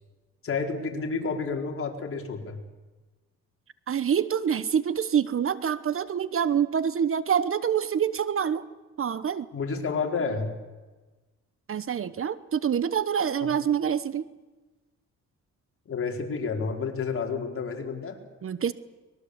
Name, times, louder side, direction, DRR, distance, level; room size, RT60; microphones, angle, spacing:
voice 1, 0.4-2.6 9.5-10.5 15.9-18.2, left 4 dB, 45° left, 2 dB, 4.7 m, -30 dB
voice 2, 3.9-8.6 9.0-9.5 11.7-14.2 18.4-18.7, right 8 dB, 45° right, 16 dB, 1.1 m, -26 dB
23.5 x 22.0 x 8.3 m, 1.2 s
cardioid pair, 90°, 30 cm